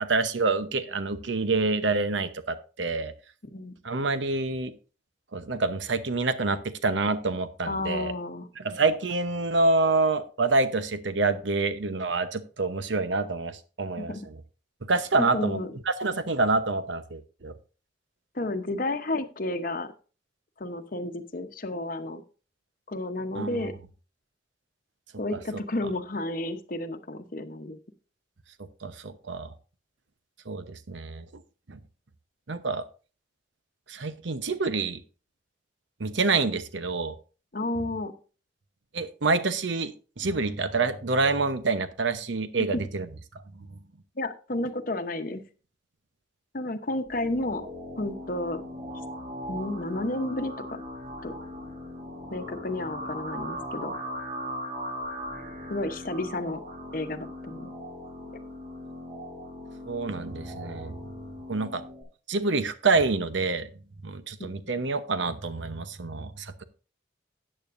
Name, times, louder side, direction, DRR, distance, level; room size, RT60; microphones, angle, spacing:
voice 1, 0.0-3.1 3.8-4.7 5.3-8.1 8.6-14.1 14.9-15.6 15.9-17.5 23.3-23.6 28.8-29.5 30.5-31.4 31.7-31.8 32.5-32.8 33.9-35.0 36.0-37.2 38.9-43.1 59.9-60.9 61.5-61.8 62.3-63.7 64.0-66.6, right 3 dB, 80° right, 11 dB, 0.9 m, -27 dB
voice 2, 7.7-8.5 14.0-14.2 15.2-15.7 18.3-19.9 20.6-22.2 22.9-23.7 25.2-27.8 37.5-38.1 42.6-42.8 44.2-45.4 46.5-47.7 48.0-48.6 49.5-50.8 51.2-51.3 52.3-54.0 55.7-56.6 56.9-57.7 64.6-64.7, left 2 dB, 45° left, 8 dB, 0.9 m, -31 dB
sound 1, 47.1-62.0, equal, 40° right, 4.5 m, -39 dB
13.5 x 8.9 x 2.6 m, 0.35 s
head